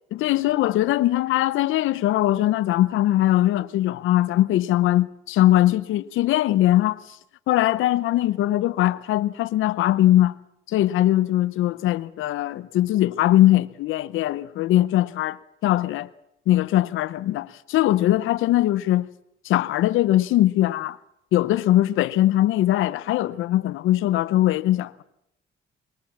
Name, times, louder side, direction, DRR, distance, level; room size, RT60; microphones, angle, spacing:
voice 1, 0.1-7.0 7.5-10.3 10.7-15.4 15.6-16.1 16.5-19.1 19.4-21.0 21.3-25.0, left 14 dB, 85° left, 0.8 m, -21 dB
22.5 x 19.0 x 7.3 m
cardioid pair, 90°, 20 cm